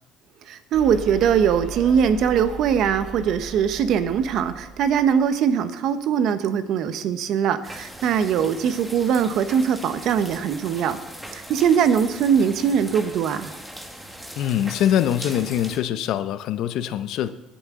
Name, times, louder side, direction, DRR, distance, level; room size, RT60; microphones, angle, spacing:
voice 1, 0.5-11.0 11.3-13.5, right 7 dB, 60° right, 11 dB, 0.8 m, -21 dB
sound 1, 0.7-5.2, right 2 dB, 35° right, 2.1 m, -38 dB
sound 2, 7.6-15.8, right 1 dB, 5° right, 1.4 m, -40 dB
voice 2, 14.4-17.3, left 10 dB, 65° left, 12 dB, 0.6 m, -23 dB
17.5 x 7.1 x 3.7 m, 0.99 s
cardioid pair, 110°, 0 cm